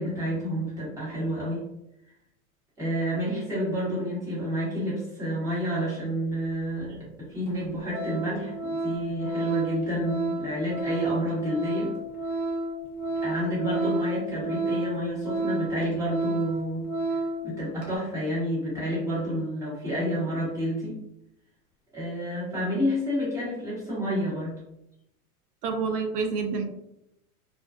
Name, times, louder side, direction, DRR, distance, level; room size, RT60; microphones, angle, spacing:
voice 1, 0.0-1.7 2.8-11.9 13.2-21.0 21.9-24.6, equal, 5° right, -7 dB, 0.9 m, -29 dB
Organ, 6.8-6.9 7.5-7.6 7.9-17.5 17.8-18.0, right 2 dB, 50° right, 0.9 m, -31 dB
voice 2, 25.6-26.6, right 5 dB, 85° right, 5 dB, 0.7 m, -28 dB
2.4 x 2.2 x 2.2 m, 0.83 s
supercardioid pair, 135°, 44 cm